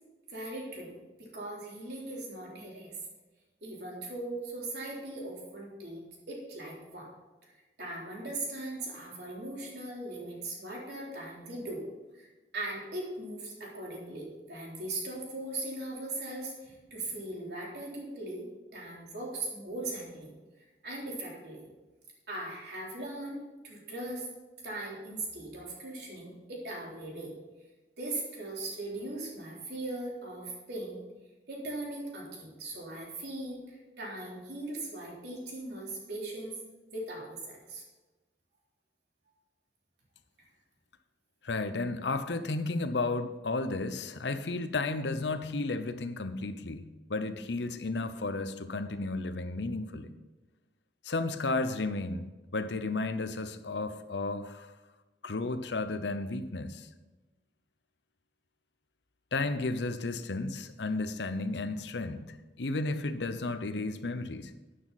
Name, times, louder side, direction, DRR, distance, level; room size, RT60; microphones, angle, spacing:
voice 1, 0.3-3.0 3.6-7.1 7.4-11.8 12.2-12.3 12.5-18.5 18.7-20.3 20.8-21.7 22.3-24.3 24.6-27.3 28.0-31.0 31.5-36.5 36.9-37.8, right 2 dB, 65° right, -3 dB, 3.8 m, -39 dB
voice 2, 41.4-50.1 51.0-52.2 52.5-54.7 55.2-56.9 59.3-64.5, left 3 dB, 80° left, 10 dB, 0.8 m, -33 dB
12.0 x 9.4 x 4.2 m, 1.1 s
head